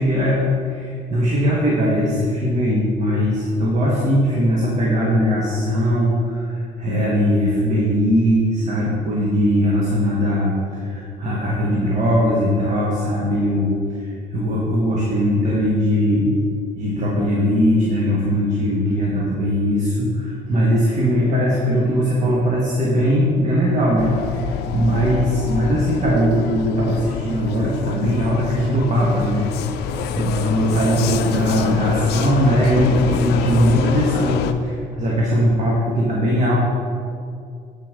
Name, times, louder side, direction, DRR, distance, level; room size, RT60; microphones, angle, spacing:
voice 1, 0.0-16.3 16.7-29.5 29.8-36.5, equal, 45° right, -4 dB, 1.5 m, -20 dB
Vehicle, 24.0-34.5, left 8 dB, 80° left, 0.5 m, -27 dB
8.3 x 6.1 x 3.7 m, 2.3 s
cardioid pair, 110°, 17 cm